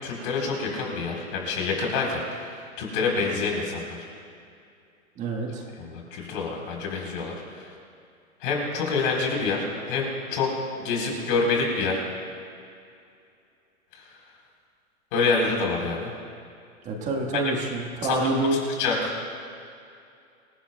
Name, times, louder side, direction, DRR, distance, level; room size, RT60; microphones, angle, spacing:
voice 1, 0.0-4.0 5.8-7.7 8.4-10.5 10.8-12.0 13.9-14.0 15.1-16.1 17.3-17.4 18.0-18.2 18.5-19.1, left 4 dB, 40° left, -1 dB, 4.3 m, -27 dB
voice 2, 5.2-5.6 16.8-18.6, right 2 dB, 15° right, 0 dB, 1.6 m, -27 dB
26.5 x 17.5 x 2.4 m, 2.4 s
hypercardioid pair, 160°, 41 cm